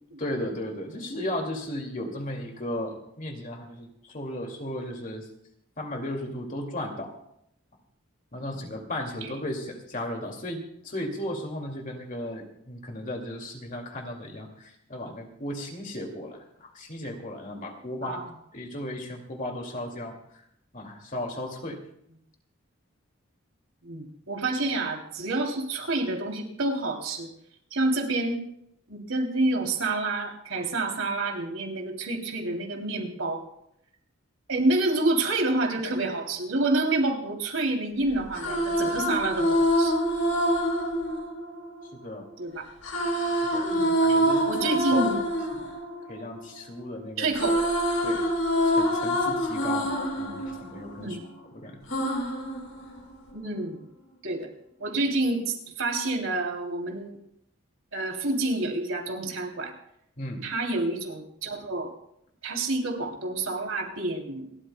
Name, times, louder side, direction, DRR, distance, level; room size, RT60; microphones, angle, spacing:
voice 1, 0.2-5.3 5.8-7.1 8.3-18.3 18.5-20.2 20.7-21.8 41.9-42.3 43.5-45.0 46.1-47.3 48.0-48.3 48.6-51.2 51.5-51.9 60.2-60.4, left 1 dB, 40° left, 2 dB, 2.4 m, -35 dB
voice 2, 18.0-18.3 23.8-27.3 27.7-28.4 28.9-33.4 34.5-39.9 42.4-42.7 43.7-44.2 44.4-45.2 47.2-47.6 51.0-51.2 53.3-53.8 54.2-54.5 54.8-57.2 57.9-59.7 60.4-61.9 62.4-64.6, right 2 dB, 75° right, 1 dB, 3.0 m, -28 dB
sound 1, 38.1-42.2 42.8-46.9 47.1-51.4 51.9-53.3, equal, 85° left, 3.7 m, -26 dB
29.0 x 13.0 x 2.2 m, 0.75 s
head